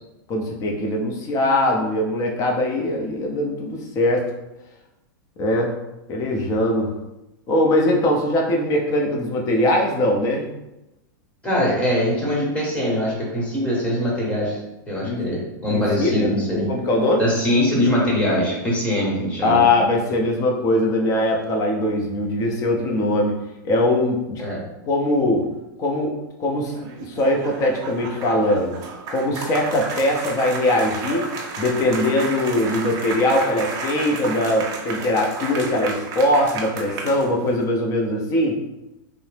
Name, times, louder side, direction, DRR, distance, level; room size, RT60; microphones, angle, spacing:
voice 1, 0.3-4.2 5.4-5.8 6.1-6.9 7.5-10.5 15.0-15.2 15.7-16.3 16.7-17.3 19.4-23.3 23.6-24.4 24.9-25.5 25.8-26.1 26.4-26.7 27.1-28.7 29.1-31.3 31.6-38.6, left 1 dB, 30° left, 0 dB, 0.6 m, -21 dB
voice 2, 11.4-14.6 14.9-16.7 17.2-19.6 24.4-24.6, left 1 dB, 10° left, -5 dB, 1.0 m, -22 dB
sound 1, 26.6-37.6, right 3 dB, 30° right, 0.5 m, -32 dB
2.8 x 2.0 x 3.2 m, 0.93 s
supercardioid pair, 140°, 11 cm